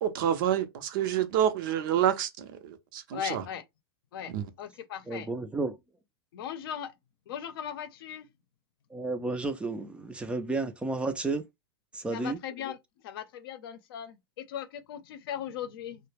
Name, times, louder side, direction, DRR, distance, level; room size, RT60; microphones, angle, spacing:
voice 1, 0.0-3.5 4.3-4.5, right 10 dB, 55° right, 0.6 m, -28 dB
voice 2, 3.1-3.6 4.1-4.3 4.6-5.3 6.3-6.9 7.3-8.2 12.1-12.8 13.0-14.1 14.5-16.0, left 9 dB, 65° left, 0.6 m, -38 dB
voice 3, 5.1-5.8 8.9-11.4 11.9-12.4, right 3 dB, 10° right, 0.4 m, -32 dB
2.2 x 2.1 x 3.2 m
hypercardioid pair, 120°, 13 cm